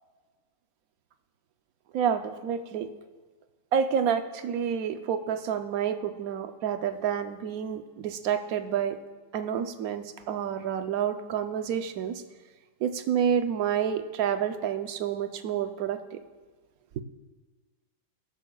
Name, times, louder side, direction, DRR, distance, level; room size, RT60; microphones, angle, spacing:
voice 1, 1.9-2.9 3.7-9.0 9.3-12.2 12.8-16.2 17.0-17.1, right 8 dB, 65° right, 8 dB, 1.1 m, -29 dB
21.5 x 11.0 x 2.4 m, 1.3 s
omnidirectional pair, 1.8 m